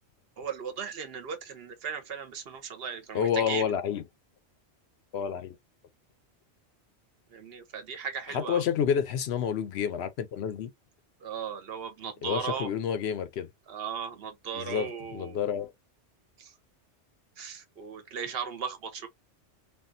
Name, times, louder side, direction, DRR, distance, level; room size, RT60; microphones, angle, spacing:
voice 1, 0.4-3.7 7.3-8.6 11.2-12.7 13.7-15.5 16.4-16.5 17.4-19.1, right 6 dB, 60° right, 0.8 m, -37 dB
voice 2, 3.1-4.0 5.1-5.6 8.3-10.7 12.2-13.5 14.5-15.7, left 8 dB, 70° left, 0.8 m, -29 dB
3.5 x 2.2 x 2.5 m
omnidirectional pair, 1.2 m